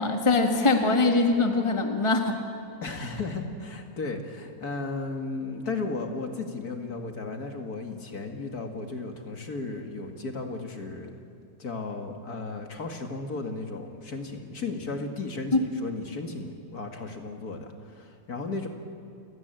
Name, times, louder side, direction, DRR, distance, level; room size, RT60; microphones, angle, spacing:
voice 1, 0.0-2.4 15.5-15.6, left 3 dB, 15° left, 4 dB, 1.8 m, -22 dB
voice 2, 2.8-11.2 11.6-18.7, left 3 dB, 55° left, 4 dB, 2.4 m, -35 dB
29.5 x 17.5 x 9.1 m, 2.4 s
omnidirectional pair, 1.9 m